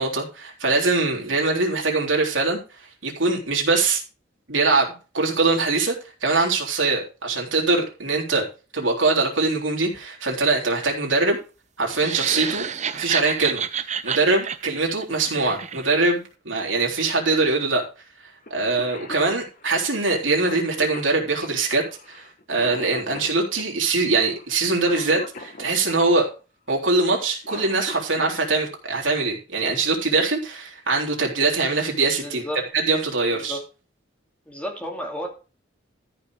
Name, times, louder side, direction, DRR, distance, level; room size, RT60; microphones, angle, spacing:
voice 1, 0.0-2.6 3.0-4.0 4.5-5.9 6.2-8.4 8.7-11.4 11.8-12.7 12.9-13.6 14.0-17.8 18.5-26.3 26.7-32.4 32.7-33.6, right 3 dB, 75° right, 0 dB, 3.6 m, -22 dB
sound 1, 11.9-16.1, right 8 dB, 35° right, 0.7 m, -29 dB
Cough, 18.5-18.6 18.8-26.1 27.2-28.3 29.9-30.0 31.0-31.3 31.8-31.9 32.3-32.7, left 2 dB, 45° left, 1.5 m, -40 dB
voice 2, 32.2-32.6 33.3-33.6 34.5-35.3, equal, 5° left, 1 dB, 2.4 m, -32 dB
14.0 x 5.7 x 4.9 m, 0.34 s
head